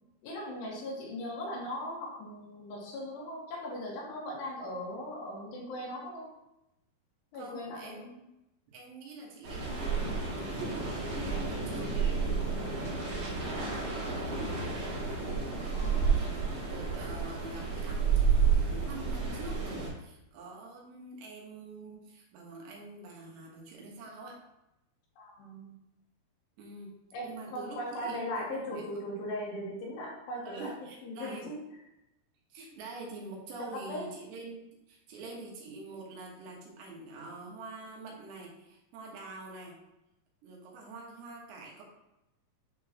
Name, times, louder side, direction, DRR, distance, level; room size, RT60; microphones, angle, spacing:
voice 1, 0.2-6.3 7.3-8.1 11.7-11.8 15.7-16.3 25.2-25.7 27.1-30.7 31.0-31.6 33.7-34.1, left 1 dB, 85° left, -3 dB, 3.8 m, -39 dB
voice 2, 7.3-8.3 8.7-12.9 13.4-14.9 15.6-24.4 26.6-27.0 27.2-28.8 30.4-31.5 32.5-34.6 34.9-39.8 40.4-41.8, right 3 dB, 85° right, -1 dB, 3.5 m, -46 dB
sound 1, 9.4-19.9, right 5 dB, 50° right, 2.6 m, -31 dB
9.7 x 4.0 x 2.9 m, 0.89 s
omnidirectional pair, 4.8 m